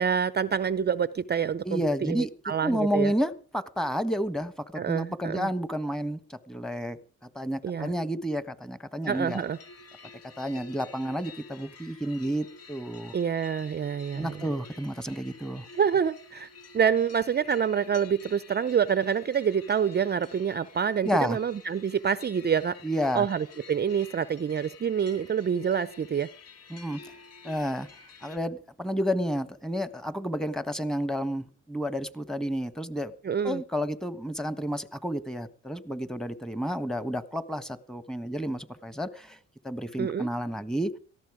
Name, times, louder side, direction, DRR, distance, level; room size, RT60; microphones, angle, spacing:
voice 1, 0.0-3.1 4.7-5.5 7.6-7.9 9.1-9.6 13.1-14.4 15.7-16.5 16.7-22.8 23.1-26.3 33.2-33.6 40.0-40.3, right 7 dB, 35° right, 0.7 m, -27 dB
voice 2, 1.6-2.3 2.6-7.0 7.3-9.4 10.4-13.1 14.1-15.6 21.0-21.4 22.8-23.3 26.7-27.1 27.4-27.9 28.2-33.1 33.4-39.4 39.6-40.9, equal, ahead, 1.5 m, -30 dB
sound 1, 9.0-28.4, left 4 dB, 55° left, 2.1 m, -50 dB
18.5 x 14.0 x 5.0 m
cardioid pair, 90°, 30 cm